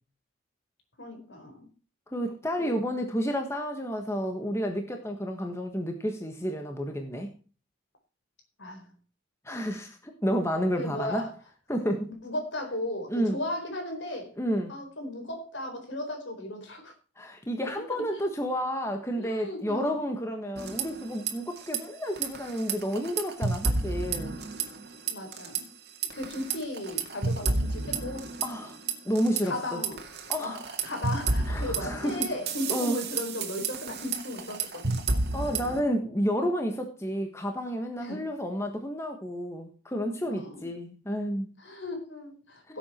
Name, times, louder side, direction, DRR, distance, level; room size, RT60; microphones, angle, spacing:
voice 1, 1.0-1.7 2.6-2.8 8.6-8.9 10.8-11.3 12.2-14.4 14.7-16.9 18.0-18.2 19.2-20.0 25.1-25.7 26.1-28.3 29.4-30.0 30.4-35.0 38.0-38.2 40.2-40.7 41.6-42.8, left 1 dB, 65° left, 4.4 m, -36 dB
voice 2, 2.1-7.3 9.4-11.2 11.7-12.1 13.1-13.4 14.4-14.7 17.2-24.3 28.4-28.8 29.0-29.8 30.3-30.6 31.5-32.2 32.7-33.0 35.3-41.5 42.7-42.8, equal, 15° left, 1.4 m, -30 dB
sound 1, 20.6-21.3 21.6-21.8 22.2-24.8 25.1-25.6 26.0-29.4 29.8-35.8, right 4 dB, 50° right, 2.3 m, -30 dB
17.0 x 7.9 x 4.4 m
head